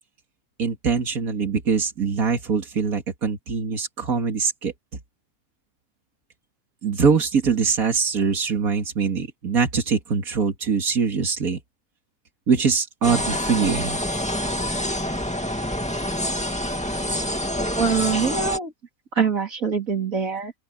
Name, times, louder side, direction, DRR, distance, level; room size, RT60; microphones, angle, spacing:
voice 1, 0.6-4.7 6.8-11.6 12.5-14.0, right 5 dB, 90° right, 2.5 m, -23 dB
sound 1, 13.0-18.6, equal, 5° left, 2.2 m, -26 dB
voice 2, 17.7-18.7 19.1-20.5, right 6 dB, 75° right, 3.5 m, -24 dB
open air
omnidirectional pair, 1.5 m